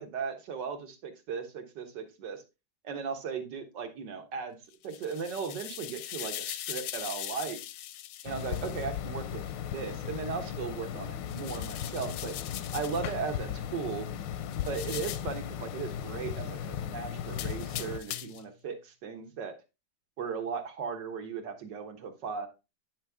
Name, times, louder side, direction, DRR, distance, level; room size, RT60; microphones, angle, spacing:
voice 1, 0.0-2.4 2.8-4.6 4.8-7.6 8.2-9.4 9.7-12.3 12.7-14.1 14.7-19.6 20.2-22.5, right 6 dB, 75° right, 5 dB, 1.9 m, -37 dB
sound 1, 4.7-8.9 11.2-13.1 14.5-15.4 17.3-18.5, left 12 dB, 70° left, 1.0 m, -41 dB
sound 2, 8.3-18.0, left 9 dB, 90° left, 1.4 m, -37 dB
9.3 x 6.3 x 3.5 m, 0.27 s
omnidirectional pair, 1.9 m